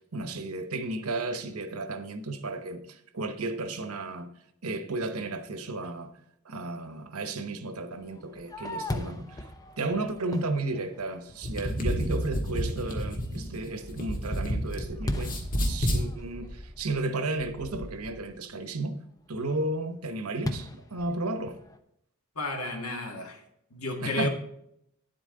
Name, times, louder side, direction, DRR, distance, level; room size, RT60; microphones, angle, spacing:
voice 1, 0.0-4.3 4.6-6.1 6.4-9.5 9.8-18.9 19.3-21.6 24.0-24.3, right 2 dB, 85° right, 1.0 m, -33 dB
Fireworks, 8.0-11.5 12.1-12.2 12.7-13.1 13.5-18.4 20.4-21.8, left 1 dB, 15° left, 0.7 m, -38 dB
sound 1, 11.3-14.8 15.1-16.0, equal, 40° left, 1.7 m, -29 dB
voice 2, 22.4-23.4 23.7-24.3, left 2 dB, 80° left, 1.9 m, -32 dB
10.0 x 7.9 x 3.8 m
head